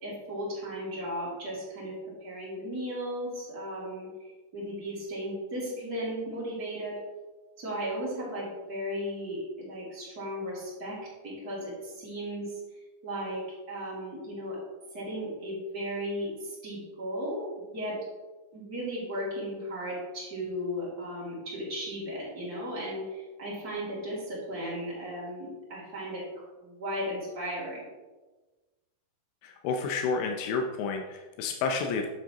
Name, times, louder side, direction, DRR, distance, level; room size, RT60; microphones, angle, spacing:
voice 1, 0.0-1.9 2.2-4.1 4.5-7.0 7.6-11.0 11.2-12.6 13.0-14.6 14.9-17.5 17.7-18.0 18.5-26.2 26.6-27.9, equal, 30° right, -7 dB, 2.4 m, -35 dB
voice 2, 29.4-32.1, left 4 dB, 90° left, 3 dB, 2.8 m, -30 dB
8.8 x 7.3 x 3.0 m, 1.2 s
omnidirectional pair, 4.8 m